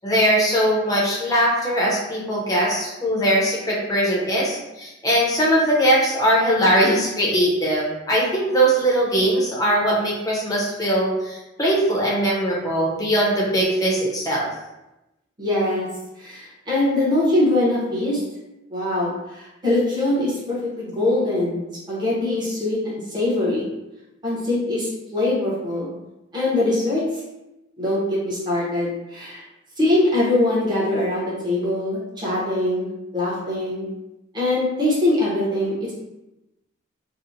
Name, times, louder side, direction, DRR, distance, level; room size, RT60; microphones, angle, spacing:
voice 1, 0.0-14.5, right 1 dB, 20° left, -5 dB, 0.5 m, -20 dB
voice 2, 15.4-15.9 16.2-18.2 18.7-21.6 21.9-23.7 24.2-25.9 26.3-27.0 27.8-29.4 29.8-32.9 33.1-33.9 34.3-35.9, left 1 dB, 20° right, -7 dB, 0.8 m, -22 dB
2.8 x 2.0 x 2.5 m, 0.97 s
head